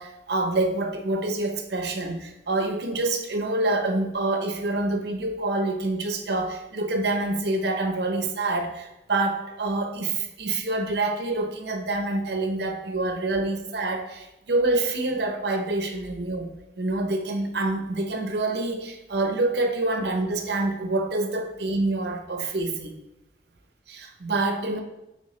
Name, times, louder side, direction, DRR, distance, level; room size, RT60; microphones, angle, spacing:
voice 1, 0.0-16.5 16.8-22.9 23.9-24.8, right 2 dB, 70° right, 5 dB, 0.7 m, -26 dB
9.5 x 3.4 x 3.2 m, 0.92 s
head